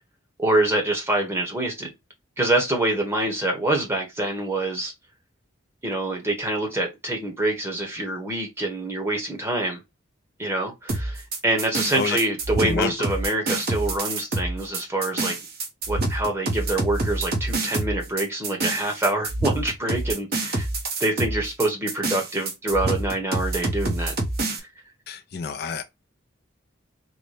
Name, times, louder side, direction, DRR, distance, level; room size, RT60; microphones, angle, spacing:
voice 1, 0.4-1.9 2.4-4.9 5.8-9.8 10.4-15.3 15.9-20.7 21.0-24.1, right 1 dB, 15° right, 1.0 m, -25 dB
sound 1, 10.9-24.6, right 2 dB, 50° right, 1.0 m, -27 dB
voice 2, 12.6-13.1 25.1-25.8, left 5 dB, 50° left, 0.4 m, -28 dB
3.9 x 2.1 x 3.2 m
head